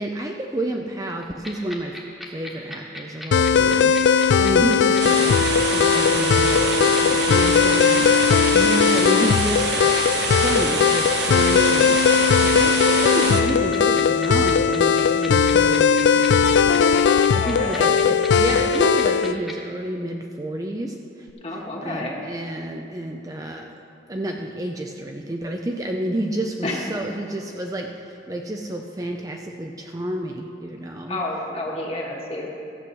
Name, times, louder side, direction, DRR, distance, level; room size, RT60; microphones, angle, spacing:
voice 1, 0.0-2.0 2.3-10.0 10.4-23.7 24.1-31.2, right 1 dB, 20° right, 2 dB, 0.5 m, -30 dB
sound 1, 1.2-19.5, left 1 dB, ahead, 1.4 m, -35 dB
sound 2, 3.3-19.3, left 6 dB, 70° left, 0.3 m, -18 dB
sound 3, 5.0-13.4, right 3 dB, 65° right, 1.3 m, -26 dB
voice 2, 17.4-17.9 21.4-22.2 26.6-26.8 31.1-32.5, left 1 dB, 30° left, -2 dB, 1.6 m, -29 dB
14.0 x 7.8 x 6.2 m, 2.6 s
head